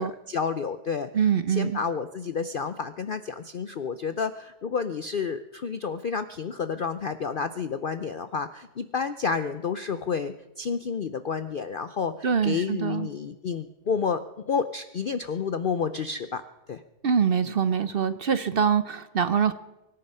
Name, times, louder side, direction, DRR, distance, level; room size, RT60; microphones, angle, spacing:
voice 1, 0.0-1.1 1.5-14.2 14.5-16.4 16.7-16.8, left 5 dB, 70° left, 11 dB, 0.5 m, -30 dB
voice 2, 1.1-1.8 12.2-13.1 17.0-19.5, right 7 dB, 55° right, 13 dB, 0.6 m, -24 dB
24.0 x 10.5 x 5.5 m, 1.0 s
omnidirectional pair, 1.7 m